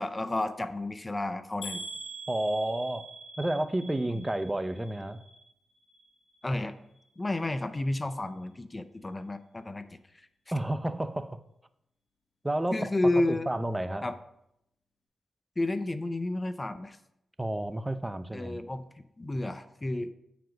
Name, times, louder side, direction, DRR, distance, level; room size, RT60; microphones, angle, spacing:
voice 1, 0.0-1.8 4.1-4.3 6.4-6.7 7.2-9.9 10.1-10.3 12.7-13.5 14.0-14.2 15.6-17.0 18.3-20.1, left 2 dB, 25° left, 0.6 m, -31 dB
sound 1, 1.6-5.6 5.9-6.5 7.0-7.1 7.4-7.5, right 2 dB, 70° left, 1.9 m, -44 dB
voice 2, 2.3-3.1 3.4-5.2 10.5-11.4 12.4-12.9 13.5-14.1 17.4-18.6, right 1 dB, 15° right, 0.6 m, -31 dB
9.1 x 4.9 x 5.1 m
cardioid pair, 60°, 0 cm